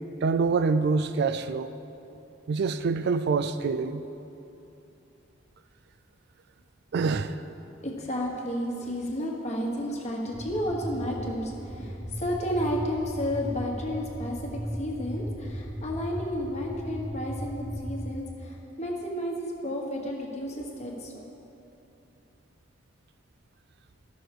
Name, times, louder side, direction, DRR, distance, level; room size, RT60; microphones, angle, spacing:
voice 1, 0.2-1.7 2.5-4.0 6.9-7.4, right 4 dB, 55° right, 0.3 m, -26 dB
voice 2, 7.8-21.2, equal, 35° left, 1.3 m, -32 dB
sound 1, 10.3-18.1, equal, 5° left, 0.8 m, -37 dB
13.0 x 6.2 x 4.8 m
head